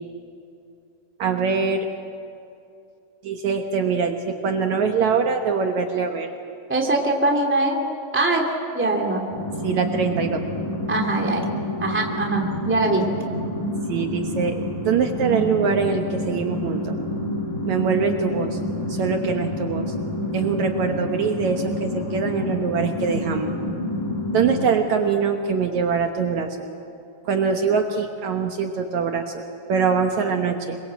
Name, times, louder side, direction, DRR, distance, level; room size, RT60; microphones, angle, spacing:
voice 1, 1.2-1.9 3.2-6.3 9.6-10.4 13.9-17.0 17.7-18.6 18.9-19.8 20.3-23.6 24.3-26.5 27.3-30.8, right 5 dB, 65° right, 4 dB, 2.3 m, -23 dB
voice 2, 6.7-7.8 8.1-8.4 8.7-9.2 10.9-11.4 11.8-13.0, right 2 dB, 5° right, 0 dB, 2.4 m, -22 dB
sound 1, 9.3-24.7, left 1 dB, 80° left, 6.1 m, -28 dB
26.0 x 23.0 x 7.8 m, 2.6 s
omnidirectional pair, 3.8 m